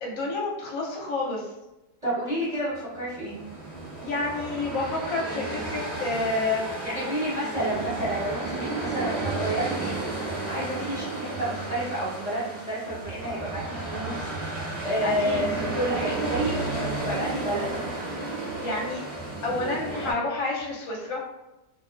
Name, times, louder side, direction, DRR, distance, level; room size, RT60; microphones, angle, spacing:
voice 1, 0.0-1.4 4.0-6.8 15.0-15.4 18.6-19.0 19.4-21.2, left 3 dB, 60° left, -3 dB, 1.0 m, -29 dB
voice 2, 2.0-3.4 6.8-9.9 10.2-17.9, equal, 25° right, -12 dB, 0.9 m, -30 dB
sound 1, 2.8-20.1, right 2 dB, ahead, 0.4 m, -32 dB
2.6 x 2.3 x 2.4 m, 0.97 s
omnidirectional pair, 1.8 m